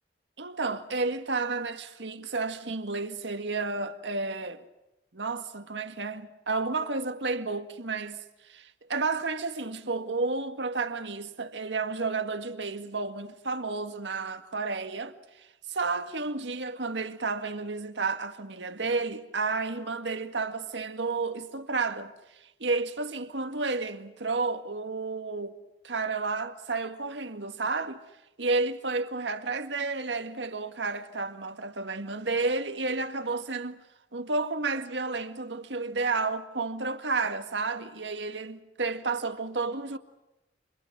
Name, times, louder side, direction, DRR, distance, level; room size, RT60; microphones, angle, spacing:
voice 1, 0.4-4.6 5.1-25.6 25.8-28.0 28.4-33.8 34.1-40.0, right 3 dB, 90° right, 1.9 m, -31 dB
29.5 x 28.0 x 6.2 m
head